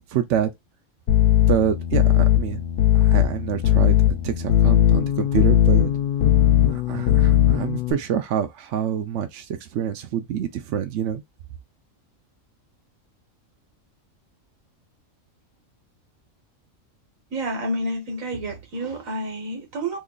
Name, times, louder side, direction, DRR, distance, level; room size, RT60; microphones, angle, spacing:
voice 1, 0.1-0.5 1.5-2.6 2.9-3.9 4.2-5.9 6.6-11.2, right 9 dB, 70° right, 0.8 m, -26 dB
sound 1, 1.1-7.9, left 12 dB, 60° left, 0.6 m, -18 dB
voice 2, 17.3-20.0, right 1 dB, 85° right, 1.5 m, -29 dB
3.1 x 2.3 x 3.7 m
omnidirectional pair, 1.4 m